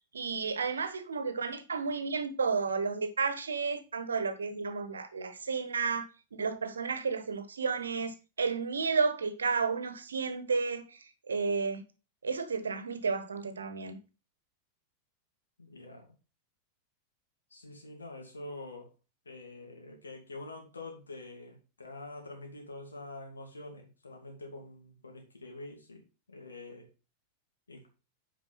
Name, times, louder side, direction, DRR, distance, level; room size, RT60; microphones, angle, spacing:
voice 1, 0.1-11.8 12.2-14.0, right 5 dB, 70° right, 1.2 m, -32 dB
voice 2, 15.6-16.1 17.5-18.9 19.2-26.0 26.3-26.9 27.7-27.9, left 2 dB, 75° left, 2.8 m, -46 dB
9.0 x 5.1 x 4.3 m
figure-of-eight pair, 90°, 0 cm